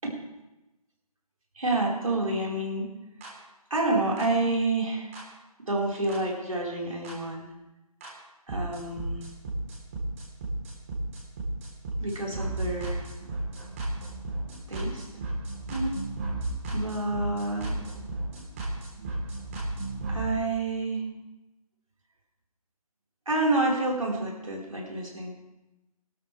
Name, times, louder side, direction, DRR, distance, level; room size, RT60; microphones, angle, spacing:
voice 1, 1.6-2.9 3.7-5.1 5.7-7.5 8.5-9.3 12.0-13.1 14.7-15.0 15.7-16.0 16.7-17.8 20.1-21.1 23.3-25.3, right 2 dB, 60° right, -2 dB, 4.4 m, -28 dB
sound 1, 3.2-3.3 4.2-4.3 5.1-5.2 6.1-6.2 7.0-7.1 8.0-8.1 8.5-20.3, right 2 dB, 20° right, 3.5 m, -34 dB
23.0 x 13.0 x 3.4 m, 1.0 s
figure-of-eight pair, 155°, 19 cm